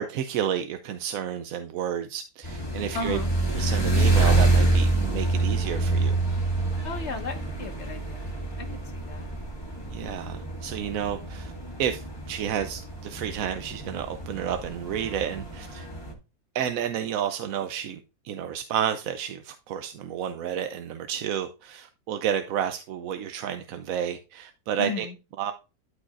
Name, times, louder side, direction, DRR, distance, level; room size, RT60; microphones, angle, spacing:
voice 1, 0.0-3.2 3.5-6.1 9.9-11.5 11.8-15.9 16.5-18.0 18.2-25.1 25.4-25.5, right 9 dB, 70° right, 1.0 m, -31 dB
sound 1, 2.4-16.1, right 2 dB, 15° left, 1.9 m, -27 dB
voice 2, 2.9-3.3 6.8-8.7 8.9-9.3 24.8-25.1, left 3 dB, 45° left, 1.7 m, -35 dB
12.0 x 4.9 x 2.5 m
omnidirectional pair, 1.6 m